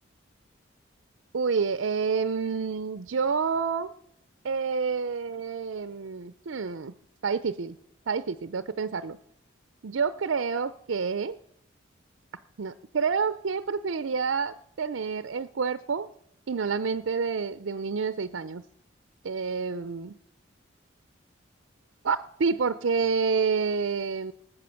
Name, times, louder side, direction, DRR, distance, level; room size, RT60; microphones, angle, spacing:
voice 1, 1.3-3.9 4.4-6.9 7.2-7.8 8.1-9.2 9.8-11.4 12.6-16.1 16.5-18.6 19.2-20.2 22.0-24.3, right 5 dB, 75° right, 13 dB, 0.5 m, -28 dB
19.0 x 8.3 x 7.0 m, 0.78 s
head